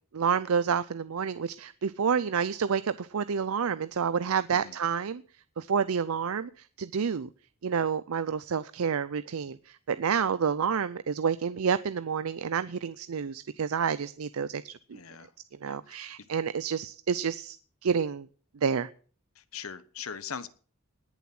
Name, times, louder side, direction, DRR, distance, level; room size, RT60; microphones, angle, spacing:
voice 1, 0.1-5.2 5.6-7.3 7.6-15.0 15.6-17.6 17.8-18.3 18.6-18.9, right 6 dB, 90° right, 15 dB, 0.5 m, -29 dB
voice 2, 14.9-15.3 15.7-16.1 19.3-20.5, left 7 dB, 80° left, 15 dB, 1.0 m, -41 dB
19.5 x 7.2 x 6.0 m, 0.43 s
head